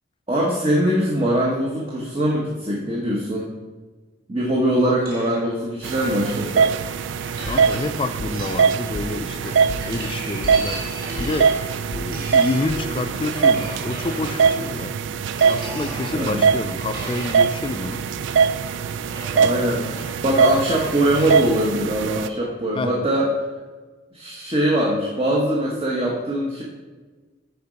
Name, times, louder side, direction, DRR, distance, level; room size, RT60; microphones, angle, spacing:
voice 1, 0.3-3.5 4.3-6.7 16.1-16.4 19.3-23.3 24.1-26.6, right 1 dB, 30° right, -3 dB, 0.9 m, -22 dB
sound 1, 5.0-14.8 15.3-21.5, right 1 dB, 50° right, 1.8 m, -37 dB
sound 2, 5.8-22.3, right 6 dB, 65° right, 0.3 m, -22 dB
sound 3, 7.4-13.3, left 2 dB, 85° left, 0.6 m, -37 dB
voice 2, 7.5-9.6 9.9-10.8 11.2-11.6 11.9-15.0 15.5-18.0 22.7-22.9, left 2 dB, 25° left, 10 dB, 0.4 m, -28 dB
6.9 x 4.7 x 5.1 m, 1.3 s
head